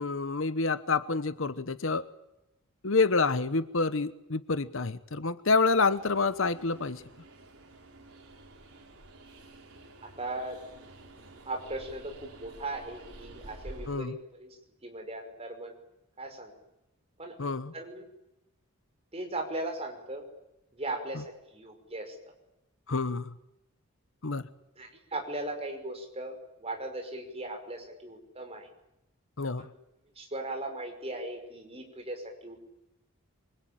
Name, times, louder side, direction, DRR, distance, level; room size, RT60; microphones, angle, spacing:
voice 1, 0.0-2.0 2.8-7.0 13.9-14.2 17.4-17.7 22.9-23.3 24.2-24.5 29.4-29.7, left 4 dB, 65° left, 13 dB, 1.1 m, -28 dB
Train, 5.8-14.0, right 1 dB, 90° right, 4.8 m, -50 dB
voice 2, 10.2-10.6 11.5-15.8 16.2-16.5 17.2-17.3 17.7-18.1 19.1-20.2 20.7-21.2 21.5-22.2 24.8-28.7 29.6-29.7 30.2-32.6, right 2 dB, 30° right, 4 dB, 5.8 m, -38 dB
26.0 x 24.5 x 9.1 m, 0.88 s
head